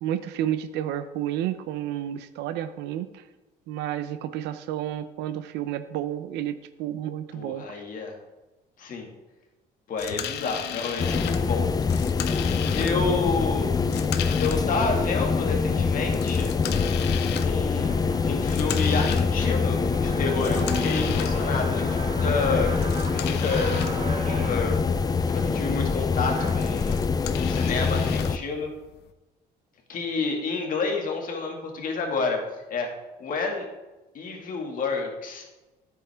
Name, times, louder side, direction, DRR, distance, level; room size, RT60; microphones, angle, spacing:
voice 1, 0.0-3.2 3.7-7.8, right 11 dB, 85° right, 12 dB, 0.6 m, -31 dB
voice 2, 7.3-8.1 8.8-9.1 9.9-11.7 12.7-13.7 14.4-16.5 17.4-22.7 23.1-23.8 24.2-24.8 25.3-27.0 27.5-28.7 29.9-32.4 32.7-32.9 33.2-33.7 34.1-35.4, left 4 dB, 55° left, 2 dB, 2.1 m, -29 dB
sound 1, 10.0-29.1, left 10 dB, 75° left, 0.7 m, -38 dB
sound 2, 11.0-28.4, left 5 dB, 20° left, 0.5 m, -25 dB
sound 3, 14.9-15.0 15.6-15.9 16.3-16.8 17.2-17.3 17.5-27.0, right 3 dB, 45° right, 3.4 m, -40 dB
10.0 x 8.2 x 3.5 m, 1.1 s
cardioid pair, 110°, 17 cm